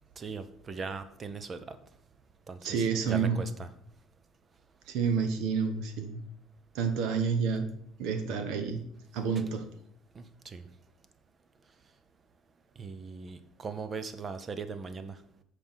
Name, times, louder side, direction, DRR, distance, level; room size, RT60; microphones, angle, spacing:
voice 1, 0.2-1.8 2.5-3.7 9.3-9.4 10.2-10.7 12.8-15.2, right 4 dB, 25° right, 11 dB, 0.7 m, -39 dB
voice 2, 2.6-3.4 4.9-6.2 6.7-7.7 8.0-8.8 9.1-9.6, right 6 dB, 75° right, 7 dB, 1.2 m, -29 dB
7.0 x 4.8 x 5.7 m, 0.71 s
cardioid pair, 130°, 0 cm